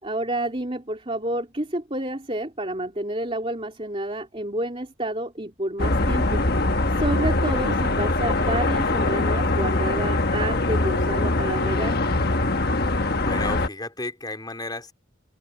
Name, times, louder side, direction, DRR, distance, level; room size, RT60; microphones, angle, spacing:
voice 1, 0.0-6.4 7.0-12.0, right 1 dB, 25° right, 3.4 m, -29 dB
sound 1, 5.8-13.7, left 2 dB, 50° left, 1.3 m, -23 dB
voice 2, 13.2-14.9, left 2 dB, 20° left, 4.2 m, -33 dB
open air
head